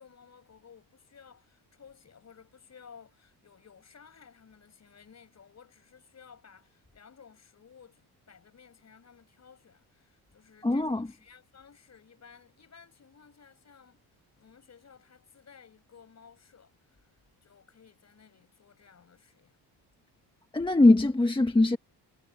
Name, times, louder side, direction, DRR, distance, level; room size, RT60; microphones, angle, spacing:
voice 1, 0.0-14.0 14.4-17.1 17.4-19.6, left 6 dB, 40° left, 6.4 m, -56 dB
voice 2, 10.6-11.1 20.5-21.8, left 2 dB, 10° left, 1.4 m, -21 dB
cardioid pair, 105°, 40 cm